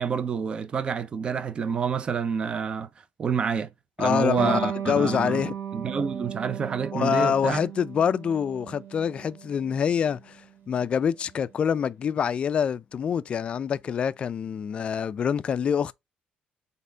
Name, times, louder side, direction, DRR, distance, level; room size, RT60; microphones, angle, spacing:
voice 1, 0.0-2.9 3.2-3.7 4.0-5.4 5.7-7.6, right 6 dB, 35° right, 0.6 m, -28 dB
voice 2, 4.0-5.5 6.9-10.4 10.7-15.9, left 7 dB, 35° left, 0.3 m, -26 dB
Electric guitar, 4.4-11.5, right 9 dB, 85° right, 1.3 m, -36 dB
4.2 x 3.5 x 3.3 m
cardioid pair, 140°, 3 cm